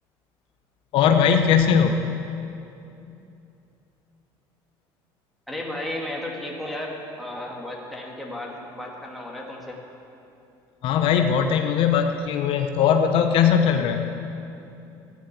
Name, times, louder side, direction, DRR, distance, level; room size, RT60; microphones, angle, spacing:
voice 1, 0.9-2.0 10.8-14.0, left 7 dB, 65° left, 5 dB, 0.9 m, -20 dB
voice 2, 5.5-9.8, left 1 dB, ahead, -3 dB, 2.7 m, -34 dB
13.5 x 10.5 x 7.1 m, 2.8 s
supercardioid pair, 100°, 10 cm